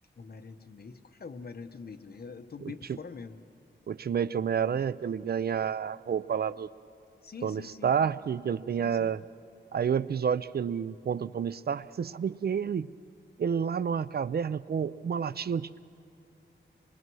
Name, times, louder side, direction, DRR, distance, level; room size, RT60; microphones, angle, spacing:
voice 1, 0.2-3.4 7.2-7.9 8.8-9.2, left 5 dB, 55° left, 8 dB, 1.0 m, -44 dB
voice 2, 2.6-3.0 3.9-6.7 7.4-9.2 9.7-12.9 13.4-15.8, right 7 dB, 55° right, 17 dB, 0.4 m, -30 dB
25.5 x 22.0 x 6.2 m, 2.8 s
wide cardioid pair, 110°, 19 cm